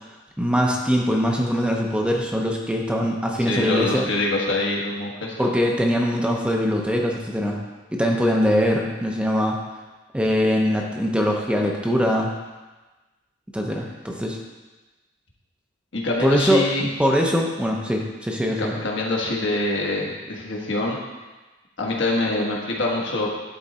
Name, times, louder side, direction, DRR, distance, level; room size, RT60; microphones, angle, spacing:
voice 1, 0.4-4.1 5.4-7.6 7.9-9.6 10.1-12.3 13.5-14.4 16.2-18.7, equal, 5° right, 0 dB, 0.7 m, -22 dB
voice 2, 3.4-5.5 15.9-16.9 18.6-21.0 21.8-23.3, left 2 dB, 65° left, -2 dB, 1.5 m, -25 dB
11.0 x 4.0 x 4.2 m, 1.2 s
head